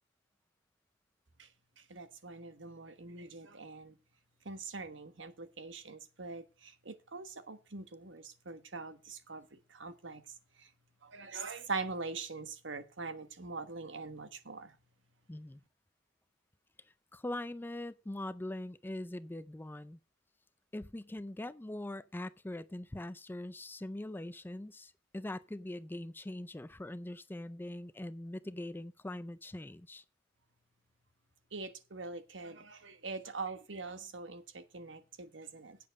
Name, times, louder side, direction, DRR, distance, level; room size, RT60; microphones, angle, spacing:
voice 1, 1.9-4.0 4.4-10.2 10.6-10.7 11.0-14.7 31.5-35.8, right 4 dB, 85° right, 1.3 m, -43 dB
voice 2, 15.3-15.6 17.1-20.0 20.7-30.0, left 1 dB, 10° left, 0.4 m, -42 dB
8.6 x 6.9 x 6.3 m
head